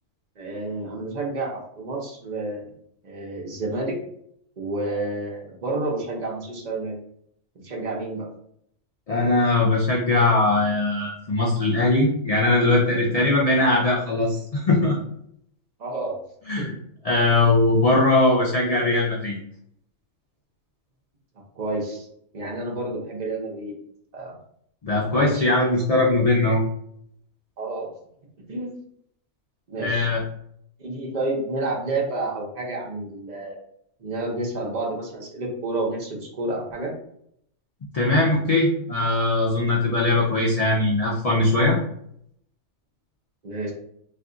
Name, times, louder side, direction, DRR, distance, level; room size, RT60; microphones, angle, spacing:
voice 1, 0.4-2.7 3.0-4.0 4.6-6.9 7.6-8.3 15.8-16.2 16.6-16.7 17.2-17.3 21.6-22.1 22.3-23.7 24.1-24.4 25.1-25.5 27.6-27.9 28.5-28.7 29.7-30.1 30.8-33.6 34.0-36.9 43.4-43.7, right 2 dB, 40° right, -1 dB, 0.7 m, -30 dB
voice 2, 9.1-15.0 16.5-16.7 17.0-19.4 24.8-26.6 29.8-30.2 37.9-41.8, left 2 dB, 75° left, -3 dB, 0.3 m, -20 dB
2.5 x 2.3 x 3.7 m, 0.70 s
omnidirectional pair, 1.3 m